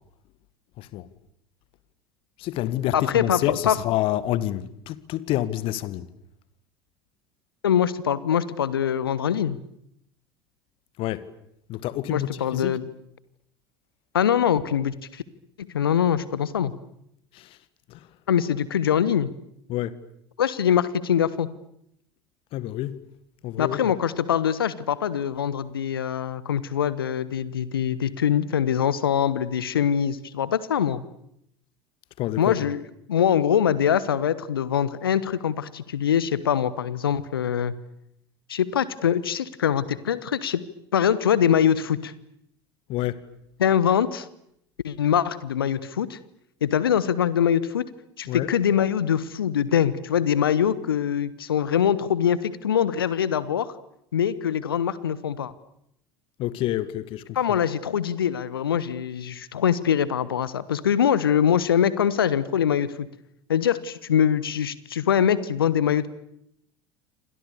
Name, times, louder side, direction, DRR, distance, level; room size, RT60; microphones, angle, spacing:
voice 1, 2.4-6.1 11.0-11.3 11.7-12.7 17.3-17.6 17.9-18.1 19.7-19.9 22.5-23.0 23.4-23.9 32.2-32.6 42.9-43.2 48.3-48.5 56.4-57.4, left 14 dB, 45° left, 1.7 m, -28 dB
voice 2, 2.9-3.8 7.6-9.6 12.1-12.8 14.1-15.2 15.6-16.7 18.3-19.3 20.4-21.5 23.6-31.0 32.4-32.8 33.1-37.7 38.5-40.6 40.9-42.1 43.6-44.3 44.8-46.2 46.6-47.9 48.2-53.7 54.1-55.5 57.3-63.1 63.5-66.1, left 9 dB, 70° left, 1.4 m, -23 dB
28.5 x 25.5 x 7.0 m
figure-of-eight pair, 70°, 12 cm